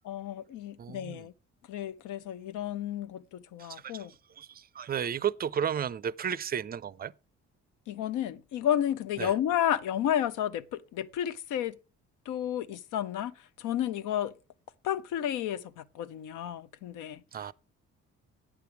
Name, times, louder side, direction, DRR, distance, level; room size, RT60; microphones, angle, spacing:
voice 1, 0.0-1.3 1.7-4.1 7.9-11.8 12.3-14.3 14.8-17.2, left 10 dB, 85° left, 0.6 m, -32 dB
voice 2, 0.8-1.2 3.6-4.1 4.4-7.1 9.2-9.3 17.3-17.5, right 8 dB, 30° right, 0.4 m, -33 dB
8.9 x 6.8 x 4.5 m
cardioid pair, 90°, 30 cm